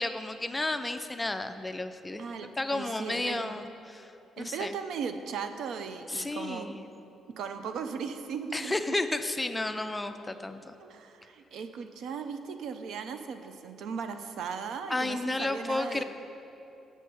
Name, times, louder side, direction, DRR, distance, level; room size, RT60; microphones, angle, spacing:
voice 1, 0.0-2.2 2.6-4.8 6.1-6.9 8.5-10.8 14.9-16.0, left 2 dB, 15° left, 9 dB, 0.4 m, -32 dB
voice 2, 2.2-3.6 4.4-6.8 7.4-8.7 10.8-16.0, right 6 dB, 75° right, 8 dB, 0.4 m, -37 dB
6.3 x 5.1 x 6.9 m, 2.9 s
cardioid pair, 90°, 0 cm